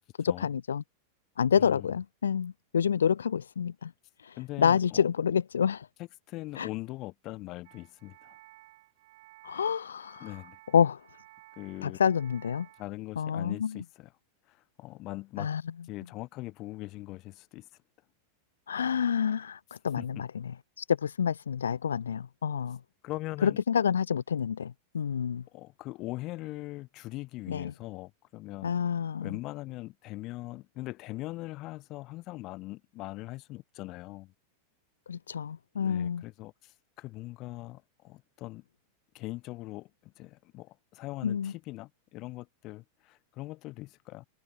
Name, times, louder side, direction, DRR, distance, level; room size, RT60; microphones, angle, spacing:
voice 1, 0.2-0.8 1.4-3.9 4.2-5.9 6.6-6.7 9.4-10.3 10.7-11.0 11.8-12.7 13.2-13.8 15.4-15.6 18.7-20.3 20.8-22.8 23.4-25.4 27.5-27.7 28.6-29.3 35.1-36.2 41.2-41.5, left 7 dB, 70° left, 0.4 m, -28 dB
voice 2, 1.5-2.0 4.4-5.1 6.0-8.4 10.2-10.6 11.6-12.0 12.8-14.1 14.5-15.5 15.8-17.7 20.0-20.2 23.0-23.6 25.5-28.7 29.2-34.3 35.8-38.6 39.1-44.3, left 19 dB, 40° left, 1.7 m, -41 dB
sound 1, 7.6-12.8, right 18 dB, 50° right, 6.5 m, -56 dB
figure-of-eight pair, 90°, 0 cm